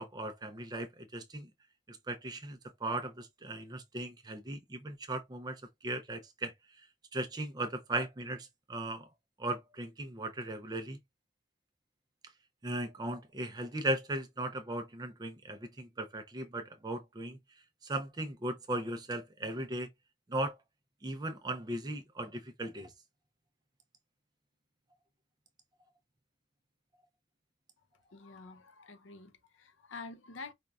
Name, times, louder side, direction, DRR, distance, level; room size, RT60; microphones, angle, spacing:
voice 1, 0.0-1.5 1.9-6.5 7.1-9.1 9.4-11.0 12.6-17.4 17.8-19.9 20.3-20.6 21.0-22.9, right 1 dB, 20° right, 0.4 m, -37 dB
voice 2, 28.0-30.5, left 4 dB, 85° left, 0.6 m, -48 dB
5.0 x 2.2 x 2.3 m
head